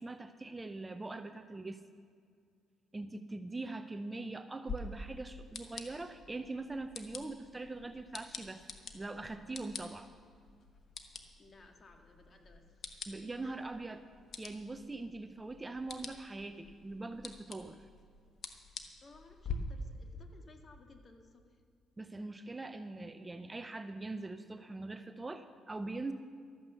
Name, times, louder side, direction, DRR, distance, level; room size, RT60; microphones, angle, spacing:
voice 1, 0.0-1.8 2.9-8.6 8.9-10.1 13.1-14.0 14.4-17.8 22.0-26.1, right 2 dB, 20° right, 9 dB, 0.6 m, -42 dB
voice 2, 3.7-4.3 11.4-12.8 13.4-13.6 19.0-21.6, left 3 dB, 40° left, 4 dB, 1.7 m, -59 dB
sound 1, 4.7-19.5, left 5 dB, 55° left, 1.3 m, -48 dB
13.0 x 9.4 x 7.0 m, 2.2 s
cardioid pair, 90°, 0 cm